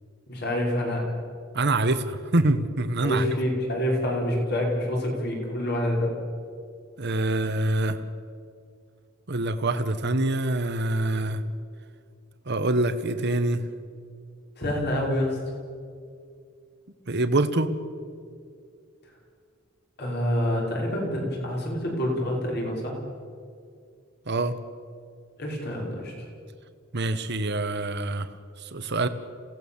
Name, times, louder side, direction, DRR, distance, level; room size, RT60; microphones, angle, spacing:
voice 1, 0.3-1.1 3.0-6.2 14.6-15.4 20.0-23.0 25.4-26.1, left 1 dB, 50° left, -1 dB, 5.4 m, -27 dB
voice 2, 1.5-3.2 7.0-8.0 9.3-11.4 12.5-13.6 17.1-17.7 24.3-24.6 26.9-28.3 28.6-29.1, right 2 dB, 55° right, 10 dB, 1.2 m, -25 dB
28.5 x 17.0 x 7.2 m, 2.3 s
head